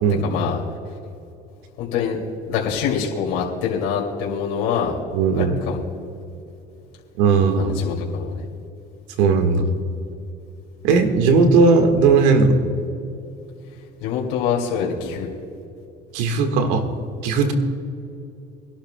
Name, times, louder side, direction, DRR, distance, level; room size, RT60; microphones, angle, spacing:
voice 1, 0.2-0.6 1.8-2.2 2.4-5.0 5.3-5.8 7.6-8.5 14.0-15.4, left 7 dB, 75° left, -3 dB, 2.5 m, -25 dB
voice 2, 5.1-5.5 7.2-7.8 9.2-9.7 10.8-12.5 16.1-16.8 17.2-17.5, right 4 dB, 90° right, 6 dB, 1.5 m, -17 dB
25.5 x 11.5 x 2.2 m, 2.7 s
supercardioid pair, 100°, 20 cm